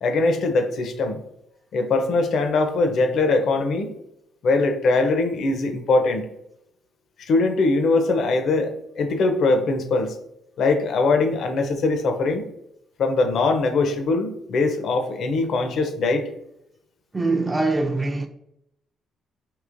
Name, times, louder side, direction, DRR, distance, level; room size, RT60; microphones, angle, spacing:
voice 1, 0.0-1.2 1.7-3.9 4.4-6.3 7.2-10.1 10.6-12.4 13.0-16.3, left 3 dB, 65° left, 0.6 m, -21 dB
voice 2, 17.1-18.3, right 3 dB, 20° right, 0.4 m, -23 dB
4.7 x 2.9 x 2.5 m
cardioid pair, 90°, 0 cm